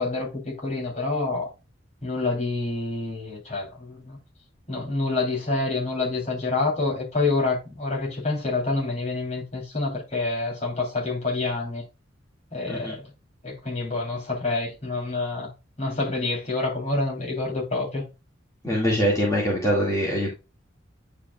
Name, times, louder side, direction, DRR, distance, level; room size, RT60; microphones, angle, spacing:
voice 1, 0.0-1.5 2.0-4.2 4.7-11.8 12.5-13.1 13.4-15.5 15.8-18.0, left 3 dB, 40° left, 3.1 m, -27 dB
voice 2, 18.6-20.3, equal, 20° left, 1.9 m, -23 dB
9.8 x 4.9 x 2.3 m
head